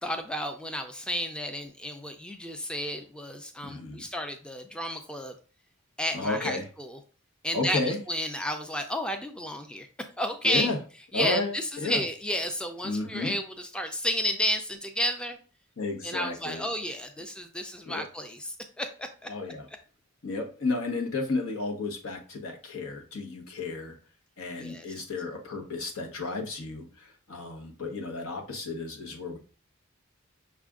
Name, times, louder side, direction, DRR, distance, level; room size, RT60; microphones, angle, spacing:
voice 1, 0.0-5.3 6.0-7.0 7.4-9.9 10.2-10.7 11.1-15.4 16.0-19.3 24.5-24.9, left 1 dB, 5° left, 6 dB, 0.4 m, -32 dB
voice 2, 3.6-4.0 6.1-6.7 7.5-8.0 10.4-10.8 11.1-12.0 12.8-13.3 15.8-16.7 17.8-18.0 19.3-19.7 20.2-24.0 24.4-29.4, left 3 dB, 80° left, 1 dB, 1.1 m, -32 dB
5.7 x 2.4 x 3.6 m, 0.38 s
head